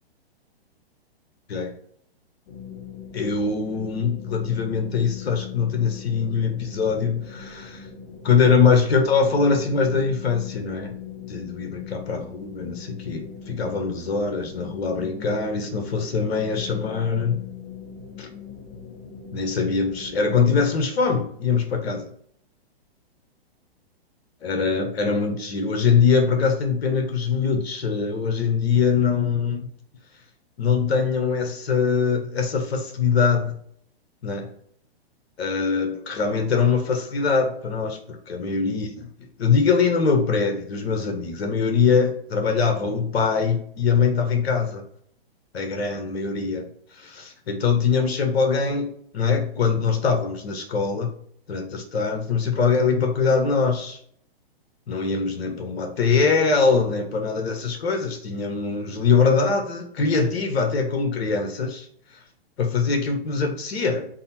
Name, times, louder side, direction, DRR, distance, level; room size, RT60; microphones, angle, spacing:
sound 1, 2.5-20.6, left 7 dB, 50° left, 1.2 m, -40 dB
voice 1, 3.1-7.9 8.2-10.9 11.3-17.4 18.2-18.3 19.3-22.1 24.4-29.7 30.6-33.5 34.2-34.5 35.4-39.1 39.4-44.8 45.5-46.6 46.9-48.9 49.1-51.1 51.5-54.0 54.9-61.9 62.6-64.1, left 5 dB, 75° left, 4 dB, 1.0 m, -22 dB
3.9 x 2.0 x 4.2 m, 0.63 s
hypercardioid pair, 130°, 31 cm